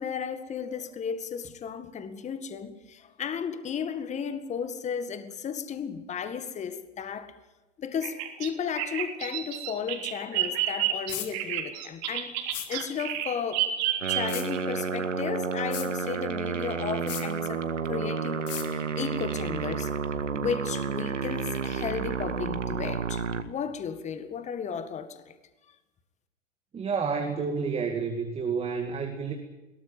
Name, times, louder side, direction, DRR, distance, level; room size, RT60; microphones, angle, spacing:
voice 1, 0.0-7.3 7.8-12.4 12.7-13.7 14.1-19.9 20.3-25.3, left 7 dB, 20° left, 1.9 m, -34 dB
Bird vocalization bird call bird song, 8.0-14.6, right 11 dB, 40° right, 3.6 m, -30 dB
sound 1, 11.1-11.3 12.5-12.7 14.3-14.5 15.7-15.9 17.1-17.3 18.5-18.7, left 12 dB, 45° left, 3.3 m, -35 dB
sound 2, 14.0-23.4, right 6 dB, 75° right, 2.0 m, -31 dB
voice 2, 26.7-29.3, right 5 dB, 15° right, 2.4 m, -29 dB
22.0 x 18.5 x 9.1 m
figure-of-eight pair, 105°, 37 cm